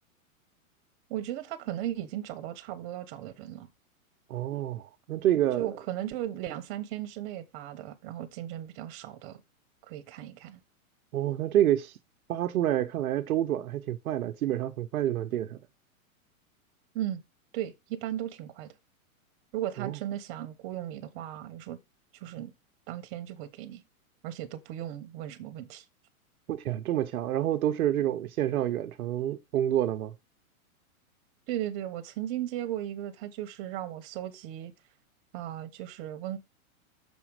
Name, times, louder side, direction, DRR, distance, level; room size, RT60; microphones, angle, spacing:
voice 1, 1.1-3.7 5.6-9.4 9.9-10.6 16.9-17.2 17.5-18.7 19.5-21.8 22.1-22.5 22.9-23.8 24.2-25.8 31.5-34.7 35.3-36.4, right 12 dB, 35° right, 1.2 m, -36 dB
voice 2, 4.3-5.8 11.1-11.9 12.3-15.6 19.8-20.0 26.5-30.1, right 12 dB, 75° right, 0.9 m, -28 dB
7.0 x 5.1 x 4.8 m
hypercardioid pair, 150°, 43 cm